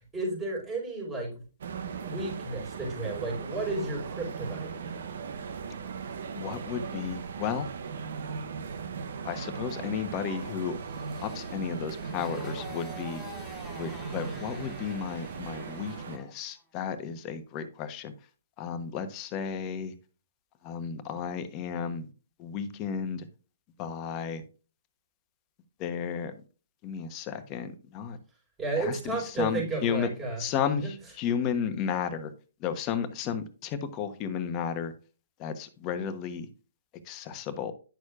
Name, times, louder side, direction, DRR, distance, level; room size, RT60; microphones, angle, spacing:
voice 1, 0.1-1.4 2.0-4.7 28.6-30.4 30.8-30.9, right 3 dB, 15° right, -2 dB, 4.6 m, -32 dB
sound 1, 1.6-16.2, right 5 dB, 60° right, 0.8 m, -38 dB
voice 2, 6.3-7.7 9.2-10.8 11.2-13.2 13.8-18.1 18.6-19.9 20.6-22.1 22.4-23.3 23.8-24.4 25.8-26.3 26.8-28.2 28.8-30.1 30.4-32.3 32.6-34.9 35.4-36.5 37.0-37.7, left 7 dB, 30° left, 9 dB, 1.0 m, -33 dB
Motorcycle, 10.3-16.4, left 1 dB, 5° left, 2.3 m, -48 dB
10.5 x 6.3 x 2.4 m, 0.35 s
figure-of-eight pair, 125°, 0 cm